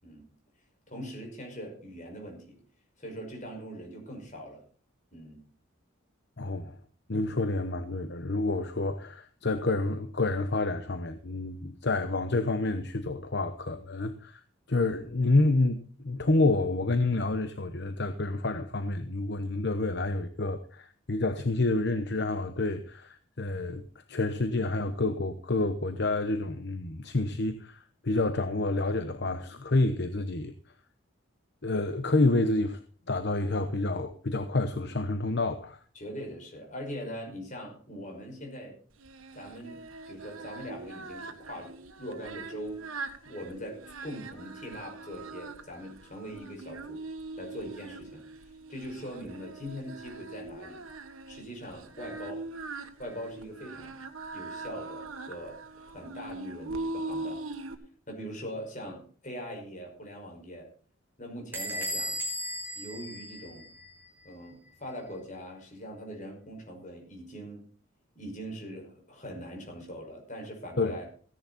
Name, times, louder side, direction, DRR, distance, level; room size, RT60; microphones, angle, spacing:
voice 1, 0.9-2.6 3.0-4.6 5.1-5.4 35.9-38.8 39.3-42.8 43.2-47.0 47.4-48.2 48.7-50.8 51.3-52.5 53.0-54.0 54.3-57.4 58.1-60.7 61.2-62.2 62.7-63.7 64.2-67.6 68.1-71.1, equal, 35° left, 5.7 m, -42 dB
voice 2, 6.4-6.8 7.1-14.4 14.7-23.8 24.1-30.5 31.6-32.8 33.1-35.8 70.8-71.0, left 2 dB, 55° left, 0.9 m, -28 dB
Singing, 39.0-57.7, right 3 dB, 90° right, 1.7 m, -41 dB
Bell / Door, 61.5-64.0, equal, 10° right, 3.9 m, -36 dB
16.5 x 10.5 x 4.3 m
head